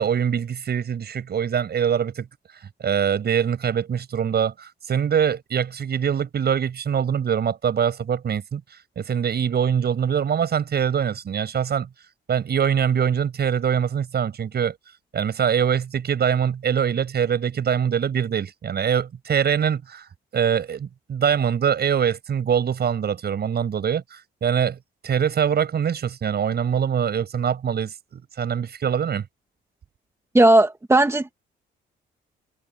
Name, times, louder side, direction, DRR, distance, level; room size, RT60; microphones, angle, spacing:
voice 1, 0.0-2.3 2.5-8.6 9.0-11.9 12.3-14.8 15.1-24.8 25.0-29.2, right 8 dB, 55° right, 8.0 m, -23 dB
voice 2, 30.3-31.3, right 2 dB, 15° right, 2.1 m, -16 dB
cardioid pair, 90°, 20 cm